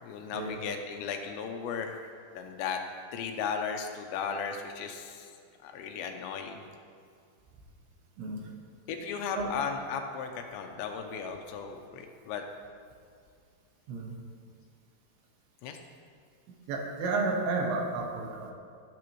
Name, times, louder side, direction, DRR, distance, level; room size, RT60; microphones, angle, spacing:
voice 1, 0.0-2.0 2.3-2.8 3.1-5.3 5.6-6.6 8.9-12.4 15.6-15.8, left 6 dB, 80° left, 4 dB, 2.9 m, -36 dB
voice 2, 16.7-18.5, right 3 dB, 75° right, 0 dB, 3.6 m, -31 dB
17.5 x 9.4 x 3.1 m, 2.2 s
omnidirectional pair, 5.3 m